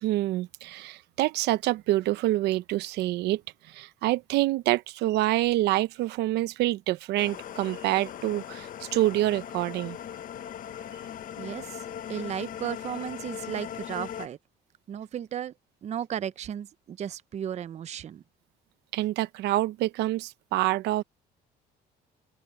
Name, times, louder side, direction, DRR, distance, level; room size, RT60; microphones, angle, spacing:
voice 1, 0.0-10.0 18.9-21.0, right 16 dB, 85° right, 0.8 m, -27 dB
sound 1, 7.2-14.3, left 9 dB, 55° left, 1.0 m, -39 dB
voice 2, 11.4-11.8 12.1-14.4 14.9-15.5 15.8-18.2, right 9 dB, 40° right, 0.6 m, -35 dB
open air
cardioid pair, 110°, 17 cm